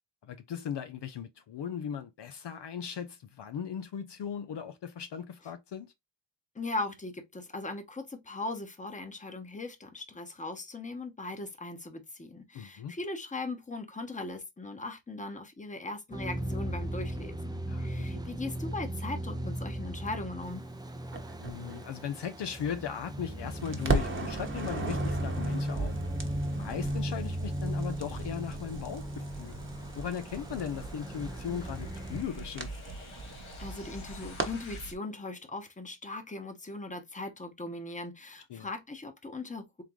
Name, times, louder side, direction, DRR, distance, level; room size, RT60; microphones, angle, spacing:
voice 1, 0.2-5.9 12.5-12.9 17.7-18.2 21.4-25.9 26.4-29.6 29.9-32.7 38.5-38.7, left 8 dB, 60° left, 0.6 m, -38 dB
voice 2, 6.5-20.6 33.6-39.8, left 2 dB, 15° left, 0.9 m, -39 dB
sound 1, 16.1-32.2, right 1 dB, 10° right, 0.4 m, -36 dB
Crackle, 21.1-23.3 23.6-34.9, right 3 dB, 25° right, 1.0 m, -38 dB
sound 2, 22.4-34.9, left 4 dB, 90° left, 1.5 m, -54 dB
3.8 x 3.6 x 3.1 m
wide cardioid pair, 115°, 46 cm